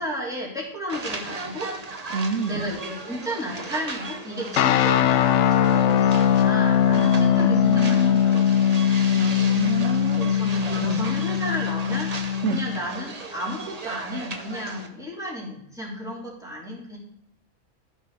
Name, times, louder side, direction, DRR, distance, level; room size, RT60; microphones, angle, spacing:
voice 1, 0.0-1.7 2.4-9.0 10.2-12.1 12.5-17.0, equal, ahead, -6 dB, 3.7 m, -33 dB
sound 1, 0.9-14.9, right 3 dB, 30° right, 0.9 m, -37 dB
voice 2, 2.1-2.7 7.1-8.2 9.2-11.0 12.4-12.6, right 5 dB, 65° right, 12 dB, 0.9 m, -29 dB
sound 2, 4.6-12.8, left 9 dB, 65° left, 0.8 m, -20 dB
14.5 x 6.4 x 3.4 m, 0.73 s
omnidirectional pair, 1.5 m